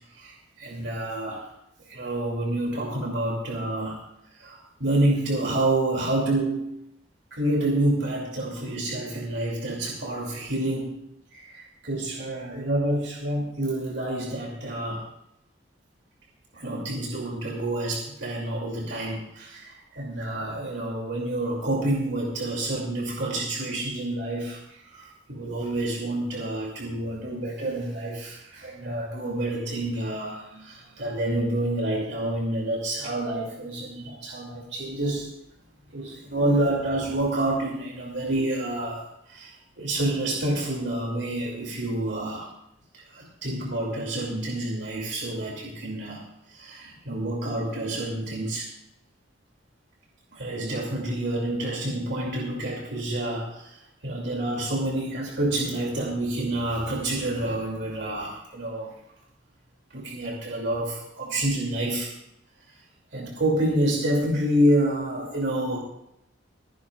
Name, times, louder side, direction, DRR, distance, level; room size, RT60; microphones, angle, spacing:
voice 1, 0.1-1.5 1.9-4.0 4.3-6.8 7.3-11.0 11.3-15.0 16.5-35.3 35.9-42.5 42.9-46.2 46.5-48.7 50.3-59.0 59.9-62.1 62.7-62.8 63.1-65.8, right 1 dB, 65° right, -2 dB, 2.7 m, -28 dB
26.0 x 10.5 x 2.5 m, 0.80 s
head